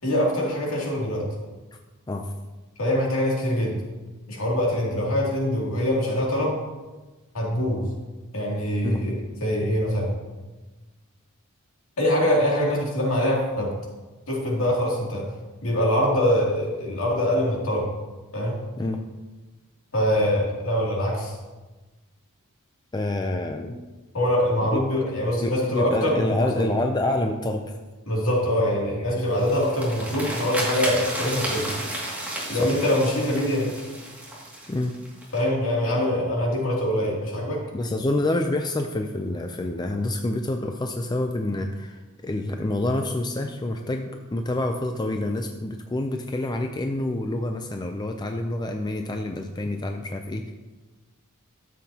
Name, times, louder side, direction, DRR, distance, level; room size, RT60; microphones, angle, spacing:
voice 1, 0.0-1.3 2.8-3.8 4.3-6.6 7.3-7.9 8.3-10.1 12.0-13.7 14.3-15.3 15.6-17.9 18.3-18.6 19.9-21.4 24.1-26.7 28.1-31.7 32.5-33.7 35.3-37.6, left 1 dB, 65° left, -3 dB, 2.7 m, -24 dB
voice 2, 22.9-23.8 24.6-24.8 25.4-27.8 32.6-32.7 34.7-34.9 37.7-50.5, left 1 dB, 20° left, 4 dB, 0.5 m, -27 dB
sound 1, 29.3-35.4, right 1 dB, 5° right, 2.2 m, -32 dB
13.0 x 7.4 x 2.9 m, 1.2 s
head